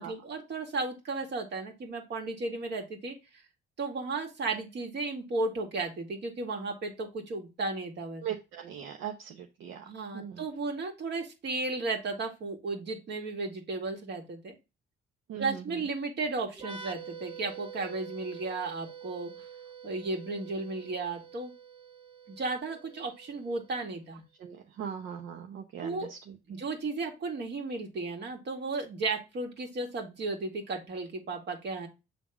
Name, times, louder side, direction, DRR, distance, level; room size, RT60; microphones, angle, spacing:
voice 1, 0.0-3.4 3.8-8.2 9.8-14.6 15.4-19.5 19.8-21.5 22.3-24.2 25.8-26.1 26.5-31.9, right 3 dB, 60° right, 3 dB, 2.1 m, -34 dB
voice 2, 8.2-9.8 10.1-10.4 15.3-15.8 24.4-26.6, right 9 dB, 80° right, 3 dB, 0.9 m, -40 dB
sound 1, 16.6-24.1, right 7 dB, 25° right, 1.3 m, -47 dB
7.5 x 3.5 x 3.6 m, 0.26 s
cardioid pair, 90°, 20 cm